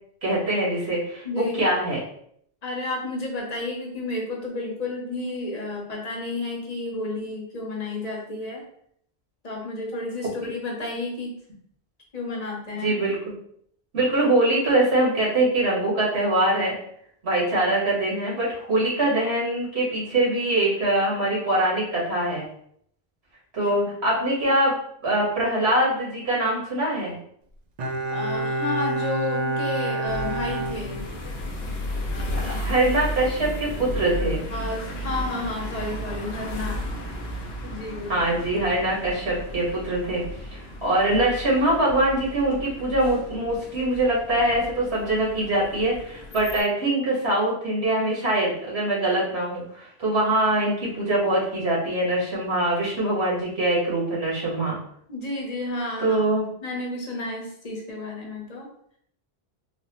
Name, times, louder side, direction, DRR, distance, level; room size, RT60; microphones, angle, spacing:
voice 1, 0.2-2.0 12.8-13.1 13.9-16.8 17.2-22.5 23.5-24.8 25.0-27.2 32.4-34.4 38.1-40.2 40.5-54.8 56.0-56.5, right 1 dB, 80° right, -5 dB, 1.6 m, -23 dB
voice 2, 1.2-1.6 2.6-8.7 9.4-11.4 12.1-12.9 23.6-23.7 28.1-31.0 32.1-32.5 34.5-36.9 37.7-38.2 55.1-56.2 56.6-58.7, left 2 dB, 40° left, -1 dB, 0.9 m, -31 dB
Bowed string instrument, 27.8-31.5 31.8-31.9, right 2 dB, 55° right, 0.5 m, -28 dB
sound 1, 30.0-46.6, equal, 75° left, 0.9 m, -34 dB
4.1 x 2.1 x 2.9 m, 0.66 s
omnidirectional pair, 1.1 m